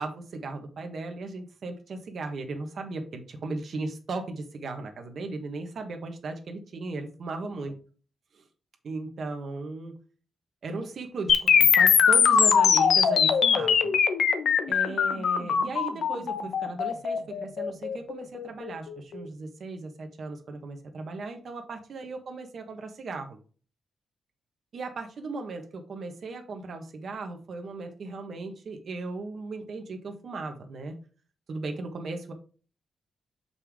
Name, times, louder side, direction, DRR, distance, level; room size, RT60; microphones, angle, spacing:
voice 1, 0.0-7.7 8.3-8.4 8.8-9.9 10.6-14.0 14.7-23.4 24.7-31.0 31.5-32.3, right 3 dB, 60° right, 5 dB, 1.3 m, -37 dB
sound 1, 11.3-19.3, left 7 dB, 80° left, 0.8 m, -22 dB
6.8 x 5.5 x 3.6 m, 0.39 s
wide cardioid pair, 125°, 0 cm